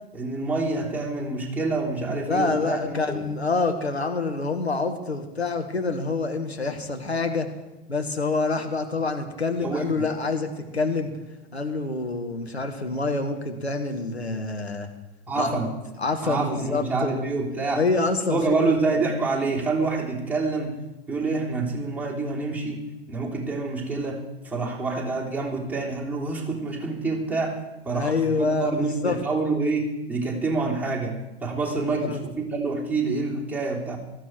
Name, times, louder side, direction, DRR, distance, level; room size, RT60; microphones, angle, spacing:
voice 1, 0.1-3.2 9.6-10.0 15.3-15.7 16.2-17.8 18.3-20.7 21.1-24.2 24.4-27.6 27.8-34.0, right 3 dB, 5° right, -3 dB, 3.4 m, -27 dB
voice 2, 2.2-7.5 7.9-11.1 11.5-14.9 15.3-15.5 16.0-17.4 17.7-18.7 27.9-29.2 31.8-32.2, left 3 dB, 85° left, 5 dB, 1.9 m, -26 dB
18.0 x 13.5 x 4.7 m, 1.0 s
figure-of-eight pair, 90°, 32 cm